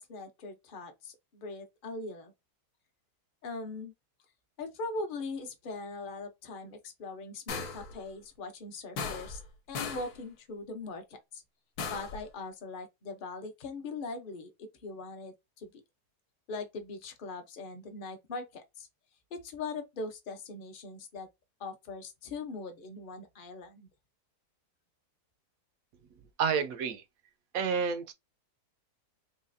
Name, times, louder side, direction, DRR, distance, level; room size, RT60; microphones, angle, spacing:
voice 1, 0.0-2.3 3.4-3.9 4.6-9.4 9.7-11.4 11.9-15.7 16.5-18.9 19.3-21.3 21.6-23.9, left 3 dB, 40° left, 0.8 m, -41 dB
sound 1, 7.5-7.9 9.0-9.5 9.8-10.2 11.8-12.2, left 5 dB, 70° left, 1.3 m, -37 dB
voice 2, 26.4-27.0 27.5-28.1, right 6 dB, 70° right, 0.9 m, -29 dB
4.0 x 2.8 x 2.6 m
omnidirectional pair, 1.7 m